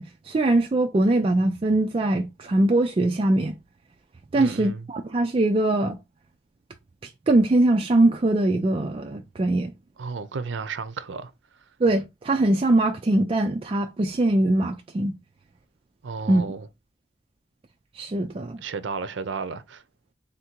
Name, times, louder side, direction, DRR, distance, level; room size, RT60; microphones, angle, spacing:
voice 1, 0.0-3.5 4.3-6.0 7.3-9.7 11.8-15.1 16.3-16.4 18.0-18.6, right 2 dB, 30° right, 0.3 m, -22 dB
voice 2, 4.3-4.9 10.0-11.3 16.0-16.7 18.6-19.8, right 5 dB, 85° right, 0.5 m, -33 dB
3.5 x 2.6 x 4.3 m
head